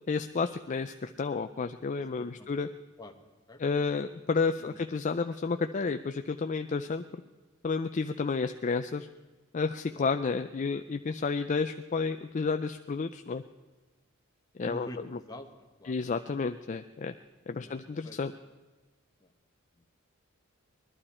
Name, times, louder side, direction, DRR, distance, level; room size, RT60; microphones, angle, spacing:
voice 1, 0.1-2.7 3.6-7.2 7.6-9.1 9.5-13.4 14.6-14.9 15.8-17.1 17.5-18.3, left 4 dB, 35° left, 8 dB, 0.4 m, -31 dB
voice 2, 2.0-2.5 3.0-3.2 3.5-3.6 4.6-4.8 9.9-10.1 14.6-16.0 17.6-18.2 19.2-19.3 19.7-19.9, left 1 dB, 20° left, 2 dB, 1.3 m, -47 dB
21.0 x 12.0 x 4.3 m, 1.2 s
head